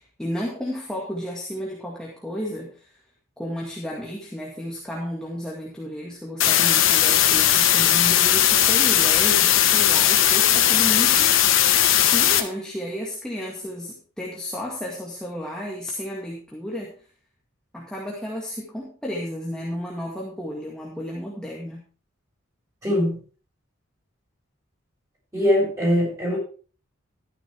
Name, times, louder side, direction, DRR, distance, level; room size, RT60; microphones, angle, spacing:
voice 1, 0.0-2.9 3.4-16.9 17.7-21.8, equal, 5° left, -3 dB, 2.0 m, -32 dB
sound 1, 6.4-12.4, left 11 dB, 75° left, 1.3 m, -18 dB
voice 2, 22.8-23.2 25.3-26.4, equal, 15° right, -3 dB, 7.7 m, -21 dB
13.0 x 10.0 x 3.6 m, 0.39 s
head